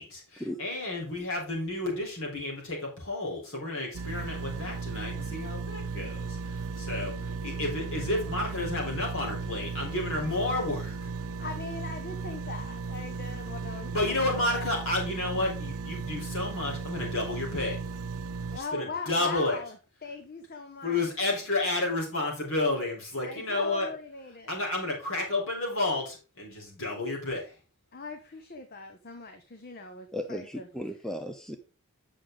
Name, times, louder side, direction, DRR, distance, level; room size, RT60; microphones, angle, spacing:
voice 1, 0.0-11.0 13.9-17.8 18.5-19.6 20.8-23.9 24.5-27.5, left 2 dB, 60° left, -1 dB, 4.0 m, -31 dB
sound 1, 3.9-18.6, right 4 dB, 75° right, 0.7 m, -36 dB
voice 2, 11.4-14.9 18.5-21.1 23.2-24.6 27.9-30.7, left 3 dB, 45° left, 7 dB, 0.9 m, -40 dB
voice 3, 30.1-31.6, equal, ahead, 6 dB, 0.6 m, -35 dB
8.9 x 6.3 x 3.8 m, 0.32 s
head